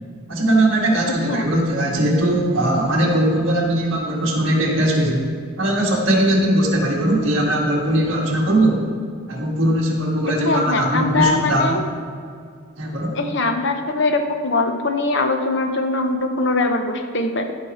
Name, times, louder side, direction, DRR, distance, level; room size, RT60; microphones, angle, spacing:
voice 1, 0.3-5.3 5.6-8.8 9.3-11.7 12.8-13.1, right 1 dB, 55° right, -3 dB, 1.9 m, -19 dB
voice 2, 10.3-11.8 13.1-17.5, left 2 dB, 50° left, 5 dB, 0.8 m, -21 dB
14.5 x 5.5 x 4.3 m, 2.2 s
head